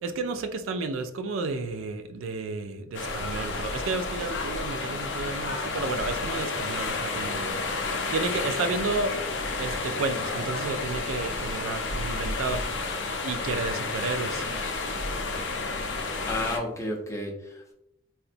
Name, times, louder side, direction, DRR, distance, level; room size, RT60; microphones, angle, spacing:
voice 1, 0.0-7.6 8.1-9.1 9.6-12.6 13.2-14.5, right 3 dB, 90° right, 9 dB, 0.3 m, -31 dB
sound 1, 2.9-16.6, left 3 dB, 65° left, 0.5 m, -31 dB
voice 2, 16.3-17.7, left 1 dB, 15° left, 0 dB, 0.5 m, -32 dB
3.8 x 2.1 x 2.5 m, 0.79 s
head